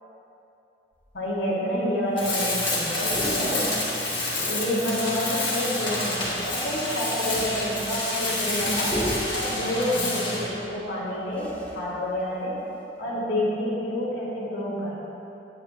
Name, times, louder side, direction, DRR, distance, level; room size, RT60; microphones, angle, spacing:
sound 1, 0.9-1.4 1.7-1.8 2.1-2.3 2.6-5.0 6.1-13.0, equal, 10° left, 1.0 m, -38 dB
voice 1, 1.1-3.7 4.4-9.0 9.3-12.6 13.0-14.9, left 1 dB, 75° left, -8 dB, 1.8 m, -28 dB
Tools, 2.2-10.5, left 2 dB, 30° left, 2.1 m, -28 dB
9.6 x 9.4 x 2.8 m, 3.0 s
head